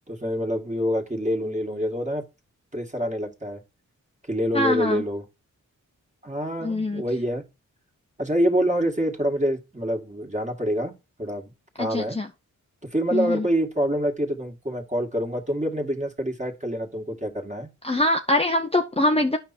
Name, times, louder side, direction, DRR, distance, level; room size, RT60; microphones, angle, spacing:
voice 1, 0.1-2.2 2.7-3.6 4.3-5.2 6.2-7.4 8.2-10.9 11.2-11.5 11.8-12.2 12.8-17.7, equal, 20° right, 2.3 m, -26 dB
voice 2, 4.5-5.0 6.6-7.0 11.8-12.3 13.1-13.5 17.8-19.4, left 1 dB, 20° left, 0.9 m, -23 dB
9.2 x 5.6 x 4.4 m
cardioid pair, 55°, 32 cm